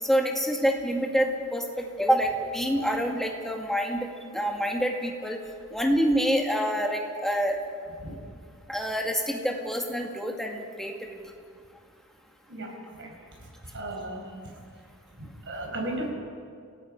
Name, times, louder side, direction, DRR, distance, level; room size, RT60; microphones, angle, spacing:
voice 1, 0.0-4.1 4.3-5.4 5.7-7.6 8.7-10.9, equal, ahead, 1 dB, 2.1 m, -26 dB
voice 2, 12.5-13.1 13.4-14.3 15.2-16.1, right 1 dB, 55° right, 1 dB, 5.1 m, -36 dB
28.0 x 17.5 x 5.4 m, 2.2 s
head